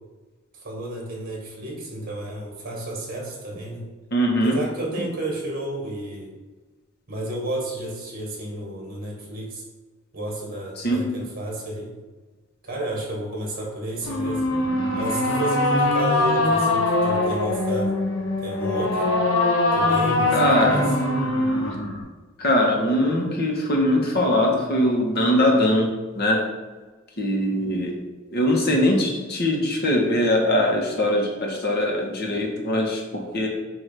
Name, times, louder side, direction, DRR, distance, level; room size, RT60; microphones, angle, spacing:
voice 1, 0.6-3.9 4.4-6.3 7.1-9.6 10.1-11.9 12.6-14.4 14.9-18.0 18.4-19.0 19.7-20.8, right 1 dB, 45° right, -2 dB, 2.3 m, -31 dB
voice 2, 4.1-4.5 10.8-11.3 20.3-20.9 22.4-25.9 26.1-26.4 27.2-27.9 28.3-33.5, left 1 dB, 50° left, 0 dB, 1.6 m, -21 dB
sound 1, 14.0-22.0, left 2 dB, 70° left, 1.2 m, -22 dB
8.2 x 3.1 x 5.9 m, 1.3 s
head